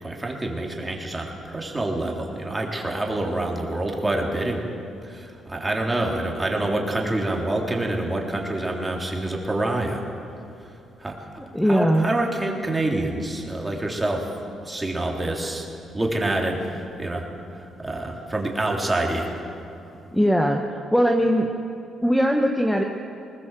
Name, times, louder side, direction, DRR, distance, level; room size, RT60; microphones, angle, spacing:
voice 1, 0.0-4.6 5.0-10.0 11.0-11.3 11.6-14.3 14.6-19.4 19.9-20.0, right 2 dB, 15° right, 0 dB, 3.7 m, -27 dB
voice 2, 11.5-12.1 20.1-21.5 22.0-22.8, equal, 5° left, 3 dB, 1.4 m, -20 dB
20.5 x 20.0 x 7.7 m, 2.6 s
cardioid pair, 90°, 0 cm